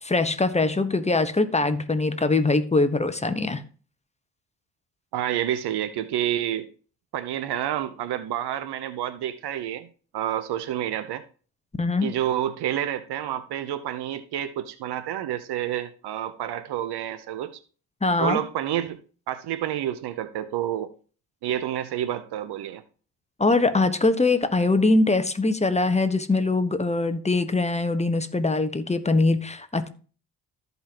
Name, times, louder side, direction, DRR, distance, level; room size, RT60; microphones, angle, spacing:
voice 1, 0.0-3.6 11.7-12.1 18.0-18.4 23.4-29.9, left 3 dB, 15° left, 1.2 m, -22 dB
voice 2, 5.1-6.7 7.1-9.9 10.1-11.2 12.0-17.6 18.2-19.0 19.3-20.9 21.4-22.8, right 11 dB, 80° right, 0.8 m, -29 dB
14.0 x 5.4 x 2.9 m
cardioid pair, 70°, 39 cm